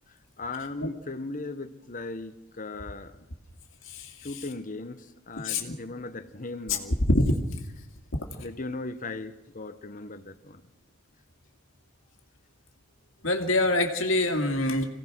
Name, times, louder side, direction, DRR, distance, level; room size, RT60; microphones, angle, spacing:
voice 1, 0.1-3.2 4.2-7.0 8.4-10.6, left 2 dB, 40° left, 1.2 m, -38 dB
voice 2, 5.4-5.7 6.7-6.8 7.1-7.3 8.1-8.3 13.2-14.8, left 1 dB, 65° left, 2.3 m, -25 dB
26.5 x 17.0 x 6.3 m
head